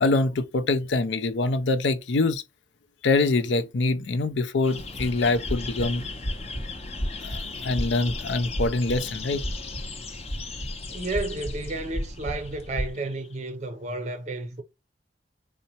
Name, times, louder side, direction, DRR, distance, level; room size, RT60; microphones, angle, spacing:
voice 1, 0.0-2.4 3.0-6.1 7.2-9.4, left 3 dB, 75° left, 0.5 m, -24 dB
sound 1, 4.6-13.4, left 5 dB, 35° left, 0.6 m, -39 dB
sound 2, 4.8-12.9, equal, 50° left, 0.9 m, -34 dB
voice 2, 10.9-14.6, right 2 dB, 40° right, 0.5 m, -32 dB
3.9 x 2.1 x 2.8 m
head